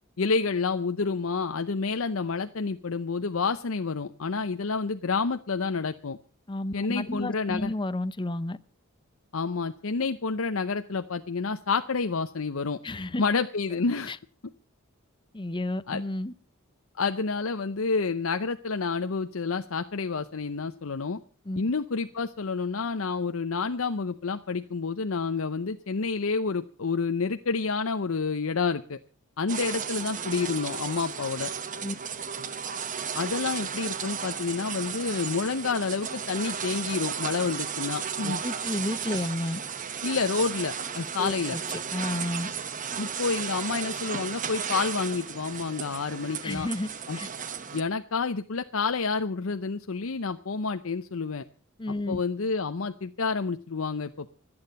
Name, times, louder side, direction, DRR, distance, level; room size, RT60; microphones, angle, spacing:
voice 1, 0.2-6.2 6.7-7.7 9.3-12.8 13.2-14.1 15.9-16.0 16.9-21.2 21.6-29.0 29.4-31.5 33.1-38.4 40.0-41.6 43.0-46.7 47.1-47.2 47.7-51.4 52.1-54.3, left 4 dB, 70° left, 0.7 m, -29 dB
voice 2, 6.5-8.6 12.8-13.2 14.1-14.2 15.3-16.3 21.5-21.6 31.8-31.9 38.4-39.6 41.2-41.6 41.9-42.5 46.4-46.9 47.1-47.3 51.8-52.2, left 1 dB, 20° left, 0.6 m, -31 dB
sound 1, 29.5-47.8, right 7 dB, 40° right, 1.0 m, -34 dB
25.5 x 8.8 x 5.4 m
head